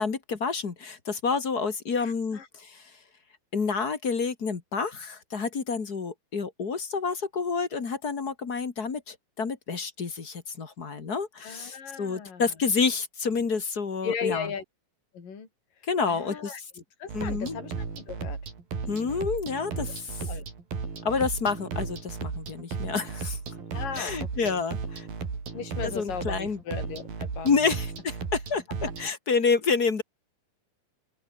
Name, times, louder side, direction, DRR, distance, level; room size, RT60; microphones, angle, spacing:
voice 1, 0.0-2.8 3.5-14.5 15.9-16.6 17.1-17.6 18.9-20.3 21.0-23.4 23.9-25.1 25.8-26.6 27.4-30.0, left 5 dB, 35° left, 1.9 m, -29 dB
voice 2, 2.0-2.5 11.4-12.5 14.0-14.6 15.1-15.5 16.1-16.6 17.0-18.4 20.2-20.4 23.7-24.2 24.4-24.6 25.5-27.5, left 6 dB, 65° left, 6.2 m, -36 dB
sound 1, 17.1-29.1, right 5 dB, 75° right, 7.1 m, -35 dB
open air
omnidirectional pair, 4.2 m